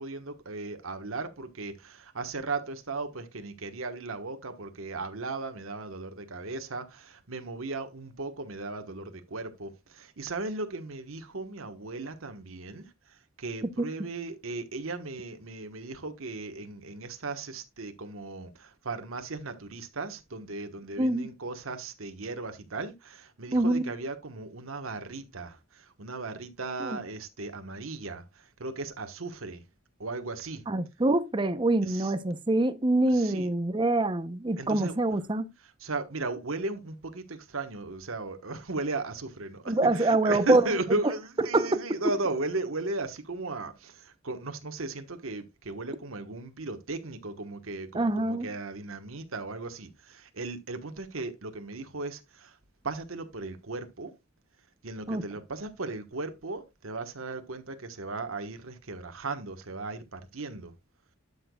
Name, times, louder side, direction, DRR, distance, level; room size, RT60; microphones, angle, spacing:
voice 1, 0.0-29.6 30.0-30.6 31.9-32.1 33.1-33.5 34.6-35.0 35.8-52.6 52.8-54.1 54.8-60.7, right 3 dB, 80° right, 1.3 m, -36 dB
voice 2, 21.0-21.3 23.5-23.8 26.8-26.9 30.7-35.5 39.7-40.6 41.5-41.8 47.9-48.5 55.1-55.2, right 2 dB, 25° right, 0.7 m, -25 dB
12.0 x 6.6 x 2.3 m
head